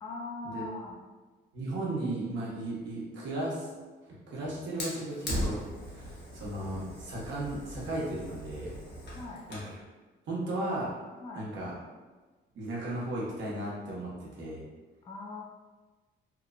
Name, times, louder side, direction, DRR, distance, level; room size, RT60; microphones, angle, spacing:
voice 1, 0.0-1.0 9.1-9.5 11.2-11.5 15.0-15.4, left 3 dB, 20° left, -2 dB, 0.4 m, -40 dB
voice 2, 1.5-3.7 4.1-5.6 5.9-8.8 9.5-9.6 10.3-10.9 11.4-11.7 12.5-14.6, right 1 dB, 70° right, -5 dB, 0.9 m, -35 dB
Fire, 4.8-9.8, equal, 60° left, 0.9 m, -38 dB
2.9 x 2.0 x 2.4 m, 1.3 s
cardioid pair, 90°, 20 cm